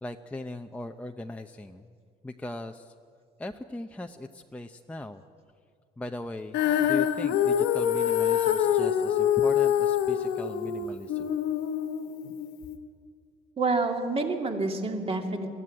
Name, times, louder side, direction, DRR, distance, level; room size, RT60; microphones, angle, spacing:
voice 1, 0.0-1.9 2.2-2.9 3.4-5.2 6.0-11.3, left 2 dB, 10° left, 4 dB, 0.7 m, -39 dB
Female singing, 6.5-12.8, left 9 dB, 85° left, 1.2 m, -25 dB
voice 2, 13.6-15.5, right 3 dB, 35° right, 3 dB, 2.6 m, -28 dB
20.5 x 15.0 x 9.9 m, 2.2 s
cardioid pair, 110°, 17 cm